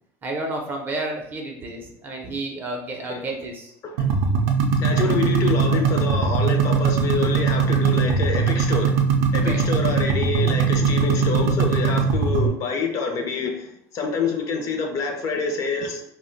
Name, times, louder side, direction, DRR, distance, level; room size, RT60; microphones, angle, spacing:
voice 1, 0.2-3.7 9.4-9.7, right 2 dB, 25° right, 1 dB, 0.5 m, -31 dB
sound 1, 4.0-12.5, right 5 dB, 80° right, 0.4 m, -21 dB
voice 2, 4.8-9.0 9.3-13.7 13.9-16.0, left 4 dB, 40° left, 3 dB, 0.5 m, -26 dB
2.4 x 2.1 x 3.8 m, 0.76 s
cardioid pair, 140°, 8 cm